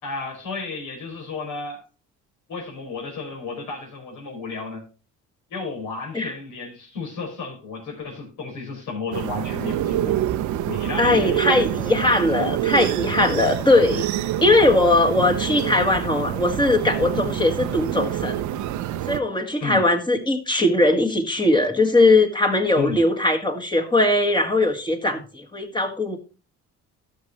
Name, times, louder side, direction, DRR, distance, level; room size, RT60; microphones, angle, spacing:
voice 1, 0.0-1.8 2.5-4.8 5.5-10.2 10.6-12.1 19.6-19.8 22.7-23.0, left 4 dB, 70° left, 5.1 m, -32 dB
sound 1, 9.1-19.2, right 12 dB, 65° right, 0.7 m, -26 dB
voice 2, 11.0-14.1 14.4-18.4 19.1-26.2, left 2 dB, 15° left, 1.7 m, -20 dB
13.5 x 6.5 x 3.1 m
cardioid pair, 95°, 31 cm